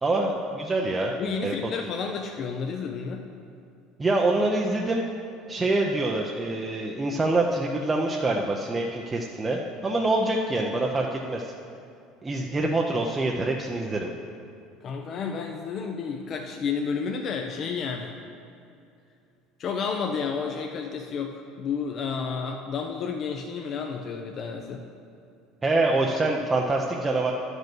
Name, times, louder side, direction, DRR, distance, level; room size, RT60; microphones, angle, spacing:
voice 1, 0.0-1.1 1.4-1.5 4.0-5.0 5.5-11.5 12.2-14.1 25.6-27.3, right 2 dB, 15° right, 0 dB, 0.5 m, -25 dB
voice 2, 1.2-3.3 14.8-18.1 19.6-24.8, left 5 dB, 35° left, 3 dB, 0.5 m, -31 dB
10.5 x 5.3 x 6.0 m, 2.5 s
cardioid pair, 155°, 0 cm